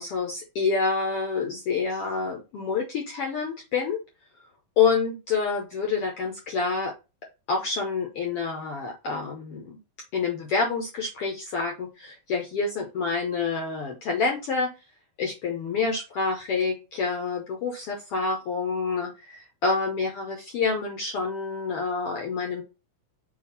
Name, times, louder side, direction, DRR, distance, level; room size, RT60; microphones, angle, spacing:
voice 1, 0.0-4.0 4.8-6.9 7.5-9.8 10.1-14.7 15.2-22.6, left 4 dB, 70° left, 1 dB, 1.4 m, -27 dB
6.9 x 2.6 x 5.4 m, 0.29 s
omnidirectional pair, 3.9 m